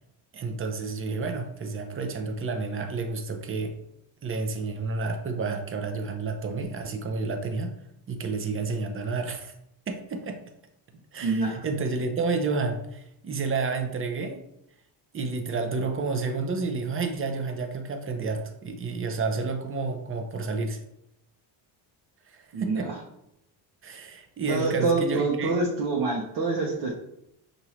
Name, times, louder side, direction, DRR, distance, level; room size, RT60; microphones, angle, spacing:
voice 1, 0.3-3.7 4.2-7.7 8.1-9.5 9.9-10.4 11.1-14.4 15.1-20.8 22.3-22.9 23.8-25.5, right 4 dB, 25° right, 4 dB, 0.7 m, -30 dB
voice 2, 11.2-11.6 22.5-23.0 24.5-26.9, right 3 dB, 50° right, -3 dB, 0.9 m, -26 dB
5.6 x 2.7 x 3.1 m, 0.79 s
cardioid pair, 95°, 50 cm